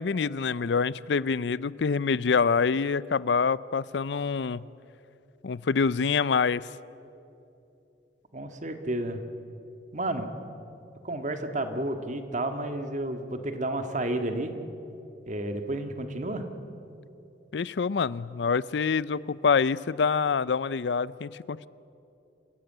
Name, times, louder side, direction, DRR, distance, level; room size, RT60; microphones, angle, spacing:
voice 1, 0.0-4.7 5.4-6.6 17.5-21.7, left 5 dB, 70° left, 20 dB, 0.5 m, -26 dB
voice 2, 8.3-9.2 9.9-10.3 11.0-14.5 15.3-16.5, right 1 dB, 45° right, 7 dB, 1.8 m, -31 dB
28.0 x 15.5 x 9.1 m, 2.8 s
head